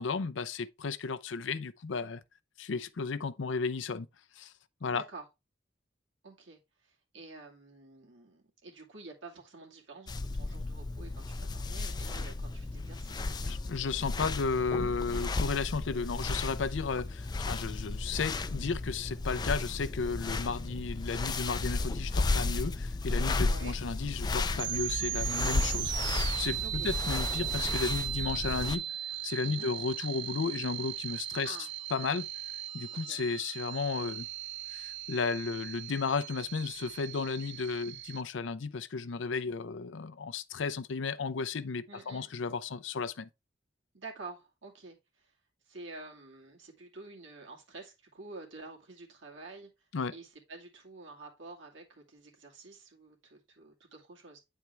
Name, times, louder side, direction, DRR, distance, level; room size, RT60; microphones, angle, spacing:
voice 1, 0.0-2.2 2.6-4.1 4.4-4.5 4.8-5.0 13.4-28.8 29.2-31.6 31.9-32.3 32.7-34.3 34.7-43.3 49.9-50.1, left 4 dB, 75° left, 0.5 m, -34 dB
voice 2, 4.9-5.2 6.2-13.6 15.0-15.3 23.5-23.8 26.6-26.9 29.4-29.7 31.4-31.7 32.9-33.2 41.9-42.3 43.9-45.4 45.6-49.7 50.1-54.4, right 3 dB, 80° right, 2.4 m, -49 dB
sound 1, 10.1-28.8, left 3 dB, 20° left, 0.4 m, -34 dB
sound 2, 24.5-38.2, right 14 dB, 65° right, 0.4 m, -38 dB
9.3 x 4.4 x 3.3 m
head